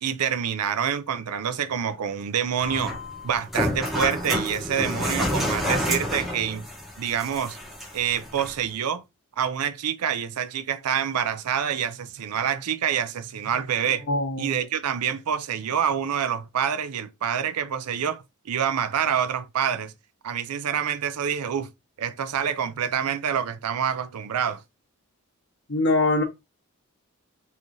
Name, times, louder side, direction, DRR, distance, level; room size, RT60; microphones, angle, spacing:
voice 1, 0.0-3.0 3.2-6.7 7.0-7.6 7.9-9.0 9.4-14.1 14.4-19.9 20.2-21.7 22.0-24.6, right 8 dB, 80° right, 0.5 m, -27 dB
sound 1, 2.6-8.6, left 1 dB, ahead, 0.9 m, -29 dB
voice 2, 14.1-14.5 25.7-26.2, left 2 dB, 55° left, 1.2 m, -22 dB
3.7 x 3.2 x 2.6 m
head